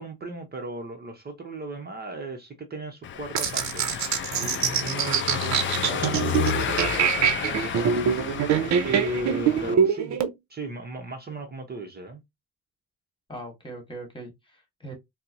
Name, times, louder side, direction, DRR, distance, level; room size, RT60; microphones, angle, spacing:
voice 1, 0.0-3.8 4.4-10.2 10.5-12.2, right 2 dB, 35° right, 0.7 m, -36 dB
Car passing by / Engine, 3.0-9.8, left 9 dB, 40° left, 0.4 m, -31 dB
sound 1, 3.3-10.3, right 7 dB, 65° right, 0.6 m, -24 dB
voice 2, 13.3-14.9, right 2 dB, 15° left, 1.4 m, -40 dB
4.2 x 2.0 x 2.5 m
cardioid pair, 90°, 30 cm